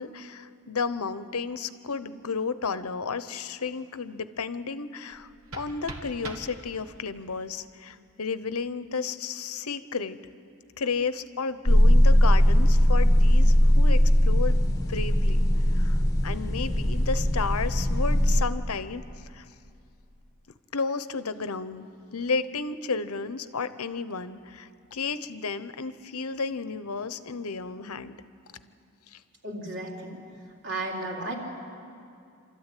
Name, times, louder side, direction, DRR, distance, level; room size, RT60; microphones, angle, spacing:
voice 1, 0.0-10.2 10.8-19.5 20.7-28.2 29.1-29.2, left 4 dB, 85° left, 12 dB, 0.9 m, -33 dB
sound 1, 5.1-7.1, right 1 dB, 80° right, 1.9 m, -42 dB
sound 2, 11.7-18.4, equal, 15° left, 1.3 m, -20 dB
voice 2, 29.4-30.2 30.6-31.3, right 2 dB, 55° right, -1 dB, 3.7 m, -33 dB
28.0 x 13.5 x 9.2 m, 2.4 s
head